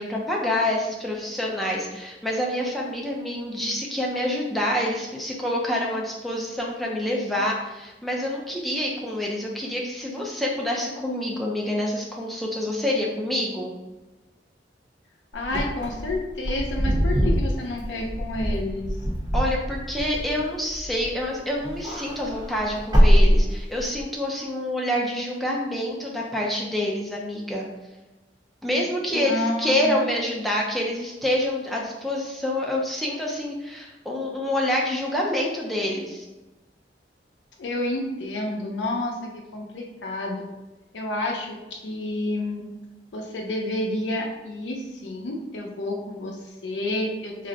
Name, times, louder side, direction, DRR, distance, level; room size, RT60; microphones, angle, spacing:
voice 1, 0.0-13.7 19.3-27.7 28.6-36.3, left 1 dB, ahead, -3 dB, 0.5 m, -27 dB
voice 2, 15.3-18.9 29.1-30.0 37.6-40.5 40.9-42.6 43.1-47.5, left 1 dB, 85° left, 0 dB, 0.5 m, -30 dB
Wind / Car, 15.4-21.2 21.6-24.0, equal, 25° right, 0.8 m, -23 dB
2.5 x 2.1 x 3.8 m, 1.1 s
head